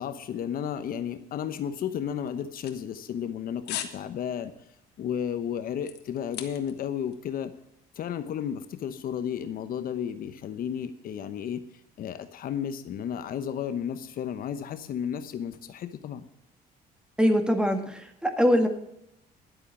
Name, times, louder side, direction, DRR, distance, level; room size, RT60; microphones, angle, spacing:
voice 1, 0.0-4.5 5.0-7.5 7.9-11.6 12.0-16.2, left 8 dB, 60° left, 11 dB, 1.0 m, -33 dB
sound 1, 2.3-3.3 3.7-4.0 4.4-4.6 5.1-6.9 7.1-7.2, left 11 dB, 80° left, 1.5 m, -38 dB
voice 2, 17.2-18.7, equal, 5° right, 7 dB, 1.8 m, -23 dB
11.0 x 8.1 x 7.1 m, 0.78 s
cardioid pair, 110°, 17 cm